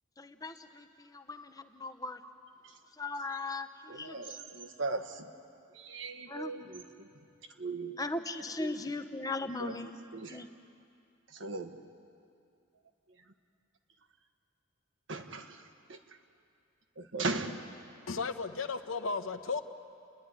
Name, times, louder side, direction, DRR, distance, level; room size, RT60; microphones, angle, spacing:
voice 1, 0.2-2.2 3.0-3.7 3.9-4.5 6.3-6.5 8.0-9.9 10.3-10.5, left 2 dB, 20° left, 8 dB, 0.8 m, -38 dB
voice 2, 3.9-5.3 5.7-7.1 7.6-8.0 9.6-9.7 10.1-10.4 11.3-11.8 15.1-15.6 15.9-16.0 17.0-17.7, right 3 dB, 65° right, 6 dB, 1.3 m, -38 dB
voice 3, 18.1-19.6, left 4 dB, 85° left, 8 dB, 1.0 m, -34 dB
30.0 x 11.0 x 9.7 m, 2.5 s
head